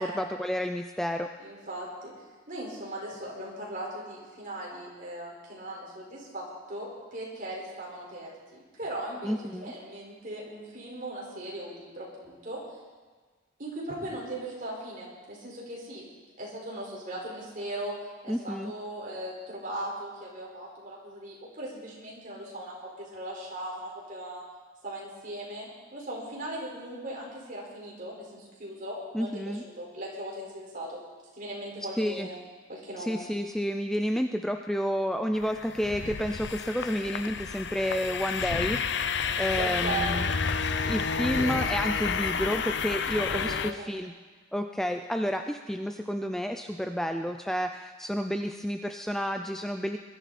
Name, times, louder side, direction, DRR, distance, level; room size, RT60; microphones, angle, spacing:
voice 1, 0.0-1.3 9.2-9.7 18.3-18.7 29.1-29.6 32.0-32.3 33.0-38.8 39.4-40.3 40.8-44.1 44.5-50.0, equal, ahead, 5 dB, 0.4 m, -30 dB
voice 2, 1.4-2.1 2.5-12.6 13.6-16.0 16.4-17.9 18.2-24.4 24.8-31.0 31.3-32.4 32.7-33.2 39.6-40.3 40.8-40.9 41.4-41.6 43.1-43.9, right 1 dB, 45° right, -3 dB, 4.8 m, -38 dB
sound 1, 35.3-43.7, left 6 dB, 60° left, 0.7 m, -30 dB
21.5 x 12.5 x 4.2 m, 1.4 s
head